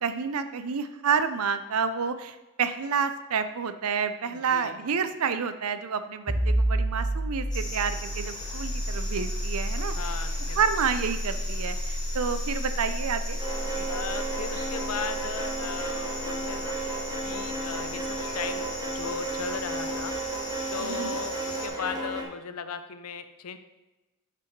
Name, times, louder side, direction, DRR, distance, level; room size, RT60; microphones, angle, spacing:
voice 1, 0.0-9.9 10.5-13.4 13.7-13.9 20.8-21.2, right 6 dB, 85° right, 11 dB, 0.6 m, -29 dB
voice 2, 4.3-4.8 10.0-10.6 13.9-16.8 17.2-20.1 20.7-23.6, left 6 dB, 85° left, 10 dB, 0.6 m, -37 dB
sound 1, 6.3-17.7, right 1 dB, 50° right, 1.5 m, -31 dB
sound 2, 7.5-21.7, left 2 dB, 20° left, 1.6 m, -40 dB
sound 3, 13.4-22.2, right 2 dB, 20° right, 1.2 m, -33 dB
6.1 x 5.9 x 4.6 m, 1.1 s
head